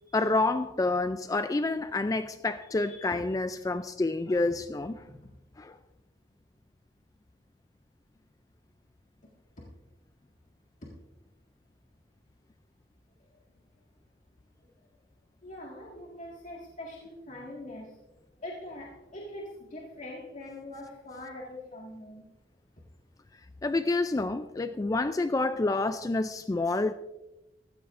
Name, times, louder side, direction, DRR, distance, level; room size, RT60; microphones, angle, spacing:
voice 1, 0.1-5.0 5.6-5.8 23.6-26.9, left 2 dB, 20° left, 0.3 m, -28 dB
voice 2, 2.7-3.2 4.5-4.6 5.0-5.2 9.6-9.7 10.8-10.9 15.4-18.0 18.4-22.3, left 1 dB, 45° left, 1.9 m, -43 dB
15.0 x 14.5 x 2.5 m
head